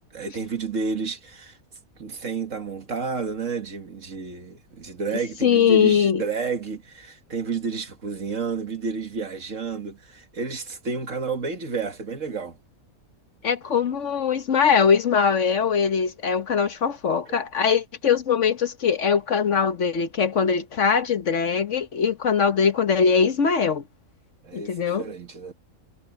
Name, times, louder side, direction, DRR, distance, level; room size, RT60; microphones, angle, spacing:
voice 1, 0.1-1.6 2.0-12.6 24.4-25.5, right 5 dB, 60° right, 2.1 m, -31 dB
voice 2, 5.4-6.2 13.4-23.8 24.5-25.1, left 6 dB, 60° left, 1.3 m, -21 dB
omnidirectional pair, 1.5 m